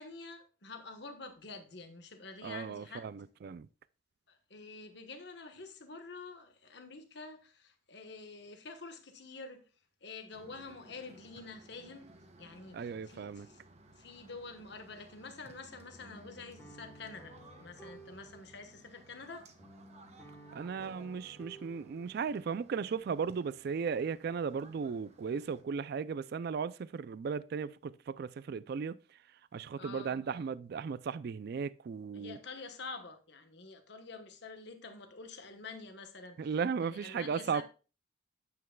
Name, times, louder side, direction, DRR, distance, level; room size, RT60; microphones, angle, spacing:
voice 1, 0.0-3.1 4.3-9.7 10.0-12.1 12.4-13.6 14.0-17.3 17.6-19.5 29.8-30.2 32.1-36.5 36.8-37.6, left 3 dB, 60° left, 1.2 m, -48 dB
voice 2, 2.4-3.7 12.7-13.5 20.5-29.2 29.5-32.4 36.4-37.6, right 6 dB, 55° right, 0.3 m, -36 dB
sound 1, 10.3-25.6, right 2 dB, 35° right, 1.0 m, -59 dB
sound 2, 15.6-22.3, right 1 dB, 10° left, 1.2 m, -55 dB
9.3 x 7.9 x 2.2 m
head